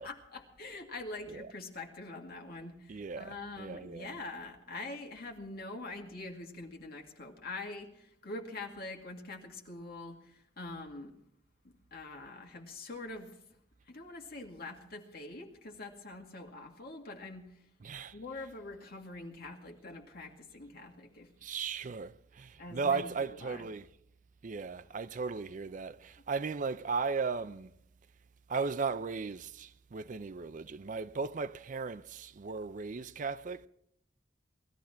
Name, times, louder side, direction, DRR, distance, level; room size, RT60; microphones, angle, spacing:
voice 1, 0.0-11.2 11.9-13.3 13.9-17.5 18.1-21.3 22.6-23.7, left 2 dB, 55° left, 2.1 m, -44 dB
voice 2, 2.9-4.1 17.8-18.2 21.4-23.9 24.4-27.7 28.5-33.7, right 5 dB, 40° right, 0.4 m, -36 dB
19.5 x 13.5 x 4.3 m
head